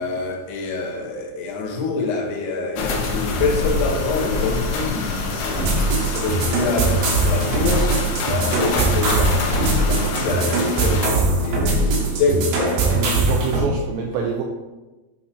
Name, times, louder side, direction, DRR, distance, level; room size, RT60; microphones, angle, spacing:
voice 1, 0.0-13.2, left 3 dB, 75° left, 2.7 m, -26 dB
sound 1, 2.7-11.1, left 3 dB, 90° left, 2.0 m, -26 dB
sound 2, 5.5-13.6, right 2 dB, 70° right, 2.7 m, -21 dB
voice 2, 12.8-14.4, right 5 dB, 85° right, 2.5 m, -25 dB
8.0 x 5.7 x 2.7 m
omnidirectional pair, 5.7 m